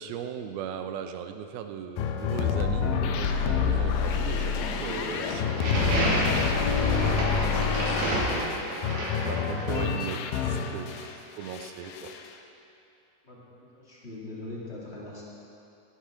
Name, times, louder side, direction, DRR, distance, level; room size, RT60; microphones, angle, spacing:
voice 1, 0.0-9.0 9.3-12.1, right 8 dB, 80° right, 7 dB, 2.2 m, -39 dB
sound 1, 2.0-11.1 11.4-12.3, left 6 dB, 90° left, 1.9 m, -28 dB
sound 2, 2.9-8.2, left 1 dB, 45° left, 3.8 m, -38 dB
sound 3, 5.5-9.8, right 1 dB, 60° right, 3.8 m, -30 dB
voice 2, 13.2-15.2, left 2 dB, 25° left, -7 dB, 1.5 m, -41 dB
16.0 x 12.5 x 3.8 m, 2.7 s
omnidirectional pair, 4.9 m